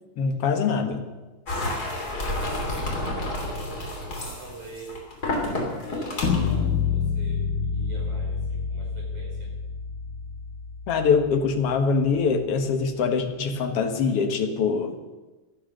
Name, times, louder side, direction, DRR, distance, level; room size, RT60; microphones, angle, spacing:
voice 1, 0.2-1.0 10.9-15.0, left 5 dB, 55° left, 6 dB, 1.8 m, -23 dB
sound 1, 1.5-6.6, left 1 dB, 25° left, 3.3 m, -30 dB
voice 2, 1.6-5.0 5.8-9.5, right 2 dB, 40° right, -2 dB, 6.1 m, -44 dB
sound 2, 6.2-12.2, left 6 dB, 90° left, 3.5 m, -28 dB
17.5 x 12.5 x 6.6 m, 1.2 s
omnidirectional pair, 4.1 m